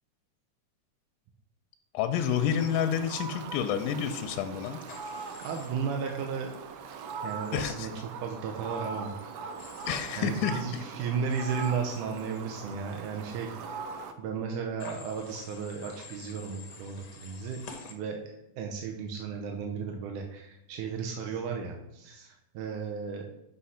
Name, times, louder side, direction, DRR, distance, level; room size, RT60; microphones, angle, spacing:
voice 1, 1.9-4.8 7.5-7.9 9.9-10.6, left 8 dB, 90° left, 7 dB, 2.2 m, -29 dB
Fowl, 2.1-14.1, right 5 dB, 70° right, 1.7 m, -41 dB
Human voice / Train, 4.9-5.7 9.6-10.1 11.3-11.7 14.8-17.9, left 4 dB, 70° left, 1.0 m, -48 dB
voice 2, 5.4-6.5 7.2-7.9 8.2-9.1 10.2-13.8 14.2-17.6 17.9-23.3, right 6 dB, 90° right, 2 dB, 2.3 m, -34 dB
6.3 x 5.7 x 5.6 m, 0.87 s
omnidirectional pair, 3.6 m